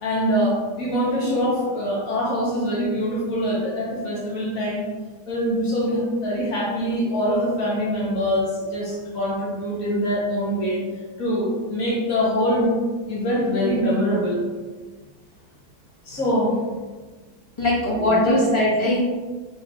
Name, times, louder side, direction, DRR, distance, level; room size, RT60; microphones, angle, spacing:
voice 1, 0.0-4.8 5.3-10.8 11.2-12.8 13.1-14.4 16.1-16.6 18.0-18.4, equal, 50° left, -5 dB, 1.3 m, -24 dB
voice 2, 17.6-19.0, left 1 dB, 20° left, -9 dB, 0.9 m, -20 dB
4.9 x 2.6 x 3.3 m, 1.4 s
omnidirectional pair, 2.2 m